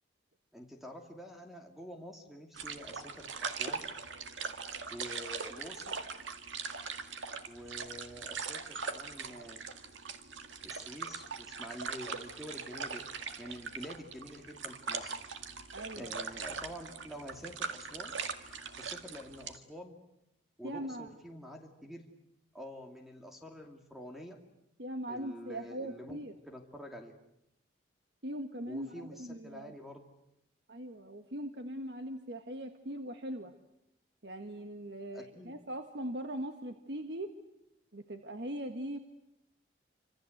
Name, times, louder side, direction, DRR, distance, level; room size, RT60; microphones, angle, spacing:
voice 1, 0.5-3.8 4.9-6.0 7.5-9.7 10.6-13.0 13.4-15.1 15.9-18.1 18.8-20.0 20.6-22.1 22.5-24.4 25.1-26.2 26.4-27.1 28.7-30.0 35.1-35.6, equal, ahead, 3 dB, 2.6 m, -47 dB
sound 1, 2.5-19.6, right 5 dB, 85° right, 1.9 m, -41 dB
voice 2, 15.7-16.1 20.6-21.1 24.8-26.3 28.2-29.7 30.7-33.5 34.2-37.3 37.9-39.0, right 1 dB, 60° right, 6 dB, 1.6 m, -40 dB
28.5 x 26.5 x 8.0 m, 0.83 s
head